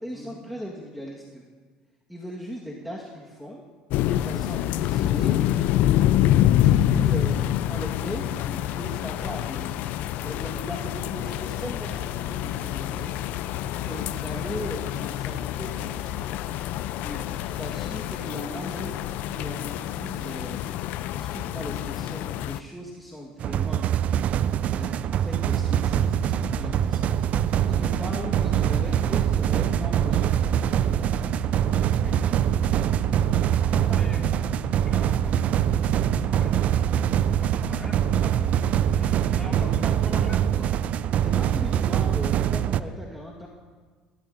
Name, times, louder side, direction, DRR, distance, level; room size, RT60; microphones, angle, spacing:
voice 1, 0.0-1.4 2.1-3.7 4.1-5.4 6.6-9.8 10.2-13.1 13.8-16.3 17.4-20.7 21.1-23.9 24.7-31.0 33.6-34.0 39.4-39.6 41.2-43.5, equal, ahead, -3 dB, 1.4 m, -38 dB
sound 1, 3.9-22.6, left 12 dB, 65° left, 0.4 m, -26 dB
voice 2, 17.0-17.3 27.8-28.0 32.0-32.3 33.9-34.2 34.9-37.1 37.4-40.8, left 2 dB, 15° left, 0 dB, 2.2 m, -43 dB
sound 2, 23.4-42.8, right 10 dB, 50° right, 0.4 m, -24 dB
sound 3, 25.3-40.3, right 5 dB, 75° right, 3.9 m, -34 dB
19.0 x 12.0 x 2.6 m, 1.5 s
supercardioid pair, 90°, 3 cm